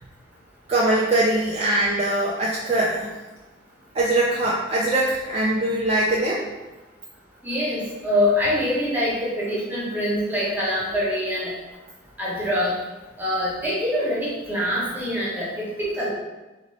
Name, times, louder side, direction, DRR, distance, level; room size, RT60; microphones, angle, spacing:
voice 1, 0.7-3.1 3.9-6.4, right 1 dB, 35° right, -4 dB, 0.4 m, -22 dB
voice 2, 7.4-11.5 12.2-12.8 13.2-16.1, left 1 dB, 10° right, -6 dB, 1.0 m, -24 dB
3.3 x 2.9 x 4.0 m, 1.1 s
head